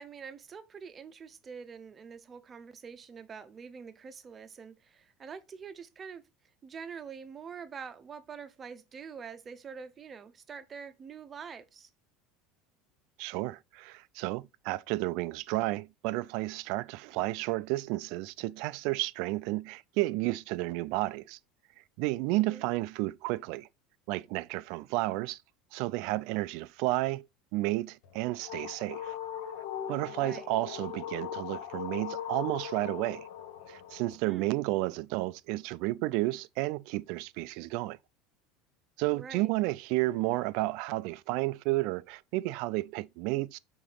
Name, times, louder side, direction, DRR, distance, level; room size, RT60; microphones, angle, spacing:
voice 1, 0.0-6.2 6.6-11.9 22.3-22.7 30.1-30.5 34.2-34.5 39.1-39.5, right 6 dB, 20° right, 0.7 m, -45 dB
voice 2, 13.2-21.4 22.0-23.7 24.1-25.4 25.7-27.3 27.5-29.2 29.9-33.3 33.7-38.0 39.0-43.6, right 19 dB, 60° right, 0.3 m, -32 dB
sound 1, 28.0-34.2, left 10 dB, 65° left, 0.9 m, -40 dB
5.0 x 3.9 x 5.5 m
cardioid pair, 155°, 0 cm